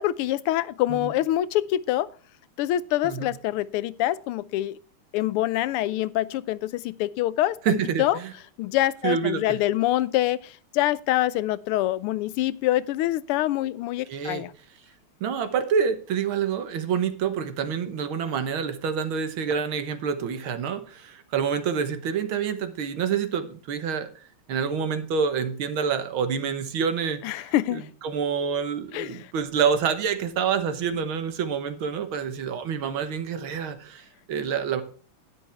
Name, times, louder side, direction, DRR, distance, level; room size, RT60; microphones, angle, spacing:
voice 1, 0.0-2.1 2.6-4.8 5.1-8.2 8.6-14.5 27.2-27.9 28.9-29.3, left 14 dB, 85° left, 1.5 m, -25 dB
voice 2, 7.7-8.3 9.0-9.6 14.1-14.4 15.2-24.1 24.5-27.2 27.7-34.8, right 7 dB, 70° right, 1.9 m, -27 dB
11.5 x 9.9 x 3.4 m
omnidirectional pair, 2.4 m